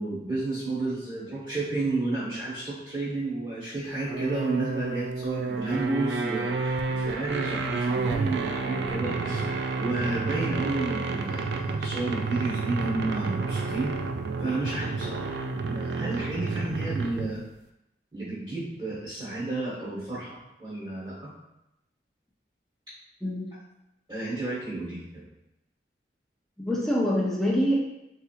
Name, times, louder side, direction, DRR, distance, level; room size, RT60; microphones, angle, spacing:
voice 1, 0.0-13.9 14.4-15.4 15.7-17.4 18.1-21.3 24.1-25.2, right 2 dB, 25° right, -10 dB, 1.2 m, -31 dB
sound 1, 4.1-17.4, right 4 dB, 65° right, 0.3 m, -30 dB
voice 2, 26.6-27.8, equal, ahead, -4 dB, 0.6 m, -25 dB
4.1 x 2.8 x 2.4 m, 0.87 s
head